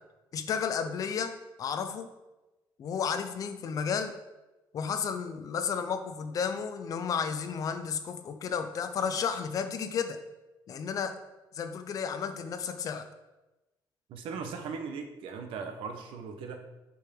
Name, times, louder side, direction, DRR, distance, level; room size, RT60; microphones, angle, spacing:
voice 1, 0.3-2.1 2.8-4.2 4.7-10.2 10.7-11.2 11.5-13.1, left 6 dB, 40° left, 8 dB, 0.7 m, -32 dB
voice 2, 14.1-16.6, right 5 dB, 85° right, 6 dB, 1.2 m, -38 dB
8.5 x 4.7 x 5.3 m, 1.0 s
cardioid pair, 175°, 9 cm